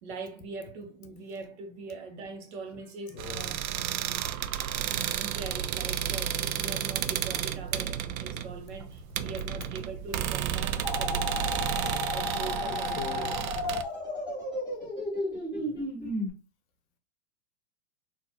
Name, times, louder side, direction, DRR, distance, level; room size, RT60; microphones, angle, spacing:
voice 1, 0.0-3.6 5.1-11.6 12.1-13.8, right 4 dB, 55° right, 1.0 m, -42 dB
voice 2, 3.1-3.5 13.0-13.3 14.8-14.9 15.7-15.8, left 6 dB, 50° left, 0.7 m, -40 dB
sound 1, 3.2-13.8, right 10 dB, 75° right, 0.5 m, -32 dB
sound 2, 10.8-16.3, left 2 dB, 10° right, 1.7 m, -33 dB
4.0 x 2.5 x 2.9 m
hypercardioid pair, 130°, 42 cm